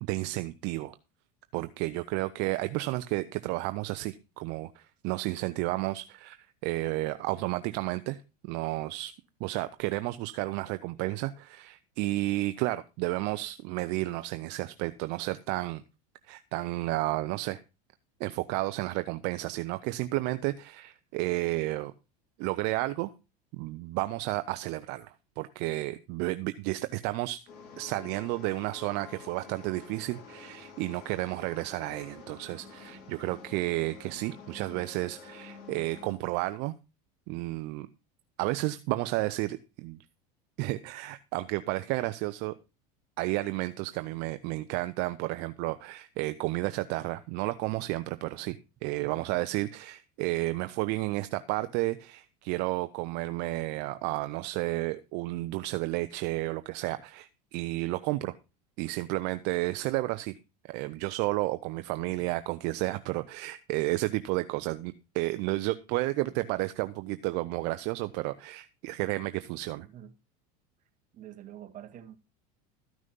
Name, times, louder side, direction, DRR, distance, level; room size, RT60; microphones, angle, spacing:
voice 1, 0.0-0.9 1.5-6.4 6.6-8.2 8.4-9.1 9.4-15.8 16.2-17.6 18.2-21.9 22.4-23.1 23.5-27.4 27.8-36.7 37.3-37.9 38.4-40.0 40.6-42.5 43.2-58.3 58.8-60.3 60.7-69.9, right 19 dB, 60° right, 0.7 m, -32 dB
sound 1, 27.5-36.1, left 5 dB, 55° left, 5.5 m, -49 dB
voice 2, 69.8-70.1 71.1-72.2, right 11 dB, 40° right, 1.9 m, -47 dB
14.0 x 6.3 x 5.3 m
supercardioid pair, 115°, 21 cm